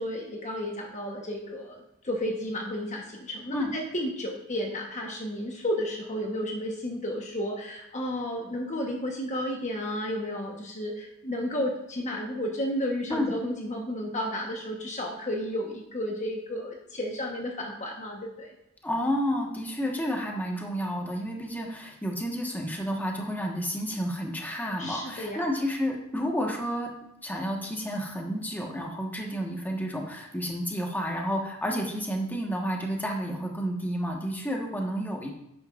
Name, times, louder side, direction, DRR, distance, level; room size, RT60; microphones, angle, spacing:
voice 1, 0.0-18.5 24.8-25.4, equal, 35° left, 1 dB, 1.2 m, -32 dB
voice 2, 18.8-26.9 27.2-35.3, equal, 10° left, 0 dB, 1.4 m, -30 dB
11.0 x 9.4 x 2.5 m, 0.86 s
head